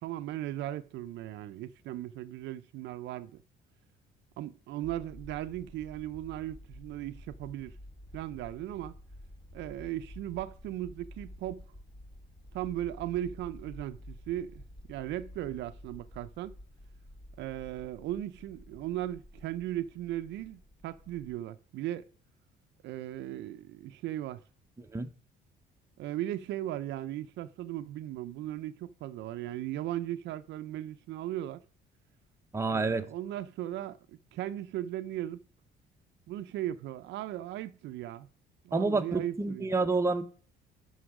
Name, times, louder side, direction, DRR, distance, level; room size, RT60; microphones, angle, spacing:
voice 1, 0.0-3.4 4.4-7.8 8.1-8.9 9.5-11.6 12.5-16.5 17.4-22.0 22.8-24.4 26.0-31.6 32.7-35.4 36.3-38.3 38.6-39.8, right 13 dB, 75° right, 0.6 m, -37 dB
sound 1, 4.8-21.3, left 1 dB, 30° left, 2.1 m, -51 dB
voice 2, 24.8-25.1 32.5-33.0 38.7-40.2, right 3 dB, 15° right, 0.9 m, -29 dB
11.5 x 5.6 x 4.9 m
cardioid pair, 125°, 18 cm